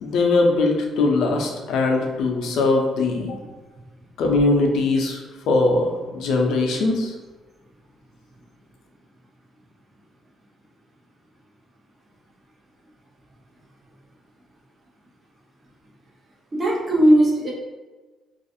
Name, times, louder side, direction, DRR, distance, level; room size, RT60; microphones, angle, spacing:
voice 1, 0.0-3.4 4.2-5.2 5.5-7.1, left 3 dB, 80° left, 1 dB, 0.4 m, -21 dB
voice 2, 16.5-17.5, right 1 dB, 30° right, -5 dB, 0.6 m, -17 dB
2.4 x 2.3 x 2.6 m, 1.3 s
cardioid pair, 140°, 0 cm